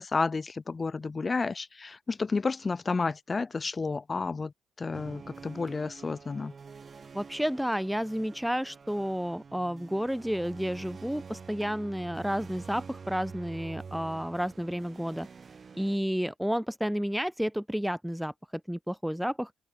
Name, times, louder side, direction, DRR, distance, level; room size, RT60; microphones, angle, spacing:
voice 1, 0.0-4.5 4.8-6.5, left 4 dB, 30° left, 4.8 m, -31 dB
sound 1, 4.9-16.0, right 5 dB, 40° right, 6.9 m, -47 dB
voice 2, 7.1-15.3 15.7-18.3 18.7-19.5, equal, ahead, 1.7 m, -31 dB
open air
cardioid pair, 90°, 0 cm